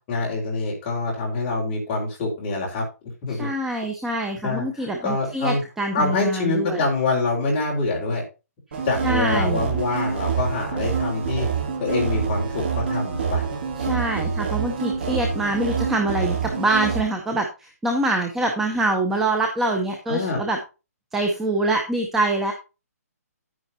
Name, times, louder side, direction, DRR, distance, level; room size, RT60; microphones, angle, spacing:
voice 1, 0.1-2.9 3.2-3.5 4.4-5.6 5.9-8.2 8.8-11.5 11.8-13.5 20.1-20.4, left 3 dB, 20° left, -2 dB, 3.9 m, -25 dB
voice 2, 3.4-6.8 9.0-9.7 13.8-20.6 21.1-22.5, right 2 dB, 5° right, 3 dB, 0.7 m, -25 dB
sound 1, 8.7-17.0, right 6 dB, 40° right, 2.8 m, -26 dB
10.0 x 9.8 x 2.7 m, 0.28 s
hypercardioid pair, 175°, 9 cm